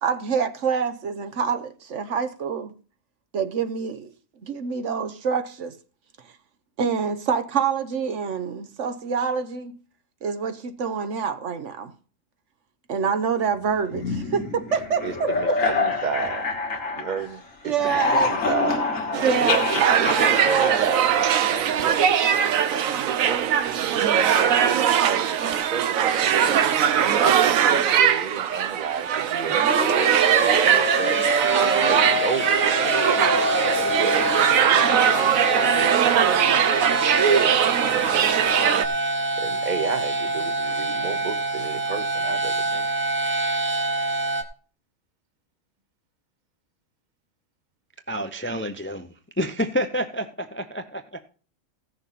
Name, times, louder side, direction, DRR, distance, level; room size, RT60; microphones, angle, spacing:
voice 1, 0.0-2.7 3.3-4.1 4.4-5.7 6.8-9.7 10.2-11.9 12.9-15.0 17.6-18.3 19.2-20.0, right 6 dB, 65° right, 1.2 m, -26 dB
sound 1, 13.9-17.4 17.7-21.7, left 3 dB, 75° left, 1.9 m, -26 dB
voice 2, 15.0-16.4 17.0-18.9 19.4-31.2 31.8-34.2 34.8-38.5 39.4-42.9, right 6 dB, 40° right, 0.8 m, -33 dB
sound 2, 19.1-38.9, right 9 dB, 90° right, 1.1 m, -21 dB
sound 3, 29.5-44.4, right 1 dB, 10° right, 0.9 m, -26 dB
voice 3, 48.1-49.1 49.4-51.3, equal, 15° left, 0.5 m, -28 dB
15.5 x 6.6 x 4.1 m
omnidirectional pair, 1.4 m